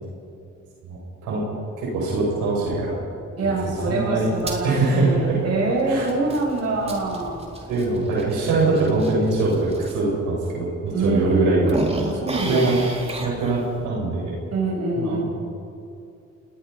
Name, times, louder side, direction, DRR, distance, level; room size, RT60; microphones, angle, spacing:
voice 1, 0.8-1.5 1.8-3.0 3.6-4.3 4.6-5.4 5.9-6.1 7.7-11.8 12.5-12.8 13.2-14.4 15.0-15.2, right 3 dB, 90° right, -4 dB, 7.5 m, -22 dB
voice 2, 3.4-7.5 10.9-11.7 12.0-12.8 14.5-15.2, right 2 dB, 55° right, -3 dB, 7.7 m, -25 dB
sound 1, 3.5-9.9 10.5-10.6 10.9-13.9, right 1 dB, 20° right, 3.8 m, -35 dB
28.5 x 19.5 x 5.5 m, 2.6 s
cardioid pair, 90°, 30 cm